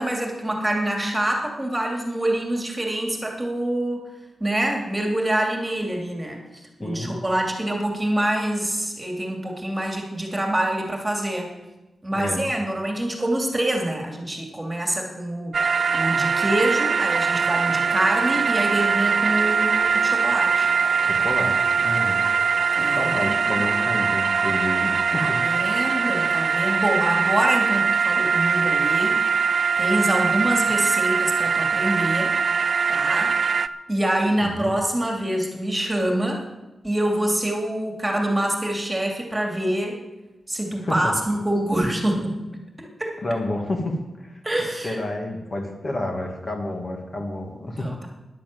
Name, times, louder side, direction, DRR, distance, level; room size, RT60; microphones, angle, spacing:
voice 1, 0.0-4.1 4.4-6.4 6.8-11.5 12.0-20.7 22.7-23.7 25.2-29.2 29.8-32.3 32.9-33.4 33.9-36.4 36.8-40.0 40.5-42.4 42.8-43.2 44.4-45.0 47.8-48.1, right 1 dB, 15° right, 1 dB, 2.6 m, -25 dB
voice 2, 6.8-7.1 12.1-12.4 21.0-22.2 22.8-25.4 34.4-34.7 40.8-41.1 43.2-44.4 44.8-47.9, left 1 dB, 40° left, 2 dB, 2.2 m, -29 dB
sound 1, 15.5-33.7, right 5 dB, 55° right, 0.5 m, -22 dB
10.5 x 10.5 x 7.8 m, 1.0 s
wide cardioid pair, 105°, 0 cm